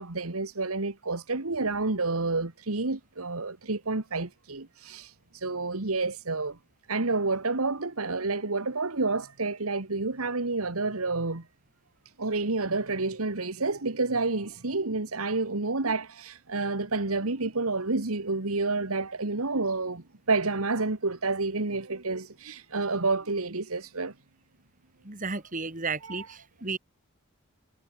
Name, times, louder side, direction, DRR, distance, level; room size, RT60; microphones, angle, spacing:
voice 1, 0.0-6.6 6.9-11.4 12.2-24.1 26.0-26.3, right 3 dB, 90° right, 1.9 m, -29 dB
voice 2, 25.0-26.8, right 4 dB, 40° right, 3.0 m, -33 dB
head